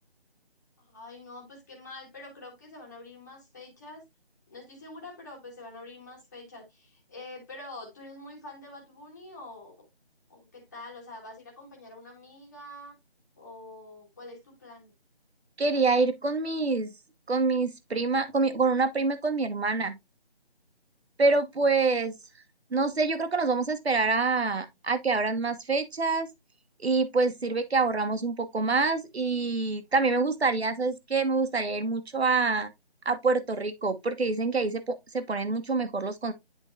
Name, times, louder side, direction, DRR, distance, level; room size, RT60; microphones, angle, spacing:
voice 1, 0.8-4.0 4.5-9.8 10.3-13.0 13.4-14.9, left 2 dB, 15° left, 1.7 m, -46 dB
voice 2, 15.6-16.9 17.3-20.0 21.2-22.2 22.7-26.3 26.8-32.7 33.0-36.3, right 3 dB, 75° right, 1.2 m, -26 dB
10.5 x 3.8 x 2.7 m
figure-of-eight pair, 170°, 32 cm